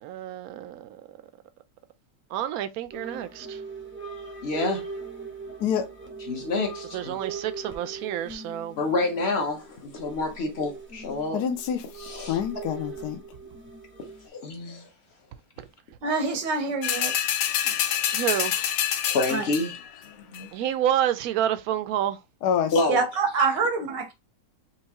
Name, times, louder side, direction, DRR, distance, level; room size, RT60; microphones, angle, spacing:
voice 1, 0.0-1.2 2.3-3.6 6.9-8.8 18.1-18.5 20.5-22.2, right 11 dB, 70° right, 0.9 m, -28 dB
sound 1, 2.9-14.3, right 4 dB, 15° right, 0.4 m, -40 dB
voice 2, 4.4-4.9 6.3-7.1 8.8-11.4 12.0-12.4 14.2-14.9 15.6-15.7 17.6-17.8 19.0-19.8 20.0-20.5 22.7-23.0 23.4-23.5, left 3 dB, 45° left, 1.1 m, -28 dB
voice 3, 11.3-11.8 12.3-13.2 22.4-22.7, left 8 dB, 70° left, 1.3 m, -26 dB
voice 4, 16.0-17.1 19.3-19.5 22.9-24.1, right 4 dB, 90° right, 1.7 m, -25 dB
sound 2, 16.8-19.9 20.3-20.4, left 10 dB, 85° left, 1.3 m, -27 dB
4.6 x 3.1 x 2.9 m
omnidirectional pair, 1.8 m